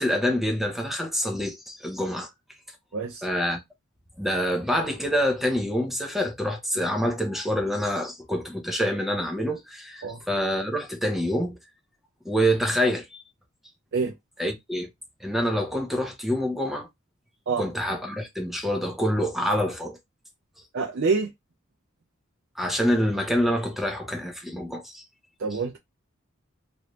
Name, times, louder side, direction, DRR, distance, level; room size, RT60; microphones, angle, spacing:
voice 1, 0.0-2.3 3.2-3.6 4.2-11.6 12.2-13.2 14.4-14.9 15.2-16.9 17.6-20.0 22.6-25.0 25.5-25.6, equal, ahead, 0.7 m, -26 dB
voice 2, 2.9-3.3 10.0-10.2 13.9-14.1 17.5-17.7 20.7-21.3 25.4-25.8, right 4 dB, 60° right, 0.5 m, -26 dB
3.2 x 2.6 x 3.0 m
head